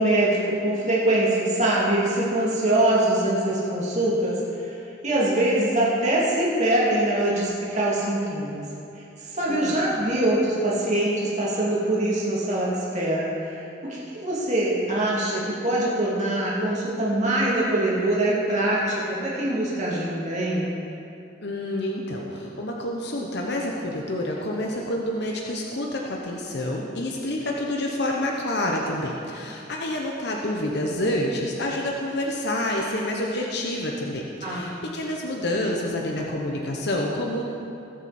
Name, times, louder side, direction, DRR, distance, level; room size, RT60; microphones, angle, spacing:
voice 1, 0.0-4.7 5.0-8.6 9.2-20.7 34.4-34.7, right 1 dB, 40° right, -7 dB, 2.9 m, -23 dB
voice 2, 9.5-10.1 21.4-37.4, left 1 dB, 60° left, -1 dB, 1.1 m, -28 dB
20.5 x 7.9 x 4.4 m, 2.7 s
head